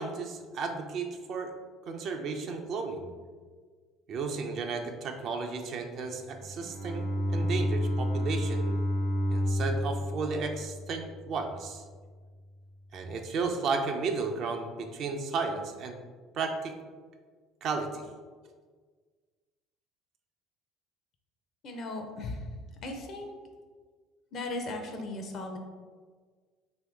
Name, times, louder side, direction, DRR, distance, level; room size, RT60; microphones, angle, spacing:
voice 1, 0.0-1.5 1.9-3.1 4.1-8.8 9.3-11.8 12.9-16.0 16.3-16.7 17.6-18.1, right 4 dB, 55° right, 4 dB, 0.4 m, -33 dB
Bowed string instrument, 6.3-11.5, equal, 85° left, 1.0 m, -30 dB
voice 2, 21.6-22.4 22.8-23.3 24.3-25.6, left 2 dB, 55° left, 4 dB, 0.5 m, -37 dB
2.8 x 2.6 x 3.4 m, 1.5 s
hypercardioid pair, 75°, 0 cm